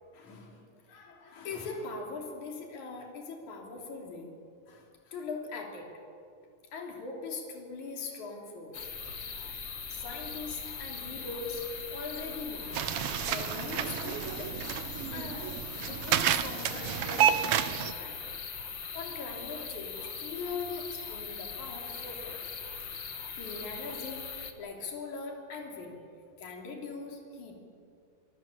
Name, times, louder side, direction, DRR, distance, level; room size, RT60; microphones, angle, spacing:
voice 1, 0.1-4.3 4.7-5.9 6.7-8.8 9.9-14.6 15.1-15.5 15.9-18.4 18.9-22.4 23.3-26.0 26.4-27.6, left 4 dB, 65° left, 1 dB, 4.5 m, -41 dB
sound 1, 8.7-24.5, left 6 dB, 45° left, 1.8 m, -41 dB
sound 2, 8.8-16.3, right 3 dB, 70° right, 6.2 m, -51 dB
sound 3, 12.7-17.9, right 10 dB, 90° right, 1.3 m, -30 dB
24.5 x 24.0 x 7.4 m, 2.3 s
omnidirectional pair, 3.8 m